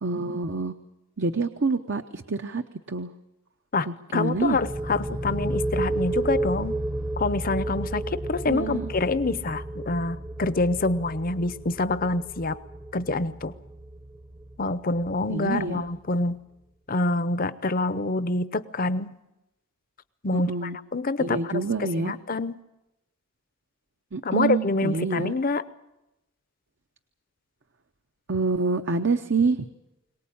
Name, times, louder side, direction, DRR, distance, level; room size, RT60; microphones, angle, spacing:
voice 1, 0.0-0.7 1.2-3.1 3.9-4.6 8.5-8.9 15.3-15.8 20.3-20.8 21.2-22.1 24.1-25.3 28.3-29.6, right 3 dB, 55° right, 8 dB, 0.8 m, -27 dB
voice 2, 3.7-6.8 7.2-12.6 12.9-13.5 14.6-16.4 16.9-19.1 20.2-22.5 24.2-25.6, left 2 dB, 40° left, 15 dB, 0.7 m, -26 dB
sound 1, 4.3-15.9, right 2 dB, 15° right, 0.8 m, -32 dB
23.0 x 19.0 x 8.6 m, 0.94 s
head